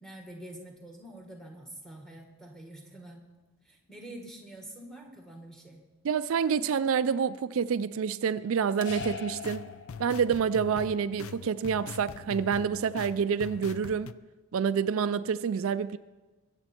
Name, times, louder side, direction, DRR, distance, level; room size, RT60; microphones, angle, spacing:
voice 1, 0.0-3.3 3.6-5.8, right 1 dB, ahead, 2 dB, 1.7 m, -46 dB
voice 2, 6.0-9.7 10.0-14.1 14.5-16.0, right 6 dB, 65° right, 13 dB, 0.4 m, -28 dB
sound 1, 8.8-10.5, left 4 dB, 50° left, 1.5 m, -40 dB
sound 2, 8.9-14.1, left 6 dB, 70° left, 0.4 m, -43 dB
22.5 x 7.9 x 4.4 m, 1.2 s
head